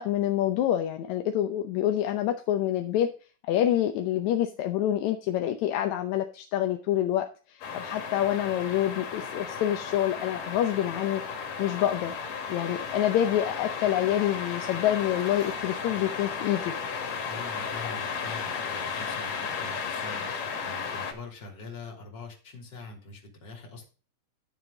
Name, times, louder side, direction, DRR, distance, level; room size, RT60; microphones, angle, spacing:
voice 1, 0.0-3.1 3.5-11.2 11.6-12.1 12.5-16.7 17.8-17.9, left 11 dB, 70° left, 6 dB, 2.0 m, -27 dB
sound 1, 7.6-21.1, left 6 dB, 90° left, 3.5 m, -34 dB
voice 2, 17.2-23.8, left 3 dB, 35° left, 0 dB, 3.6 m, -44 dB
11.0 x 7.4 x 3.9 m, 0.36 s
omnidirectional pair, 3.7 m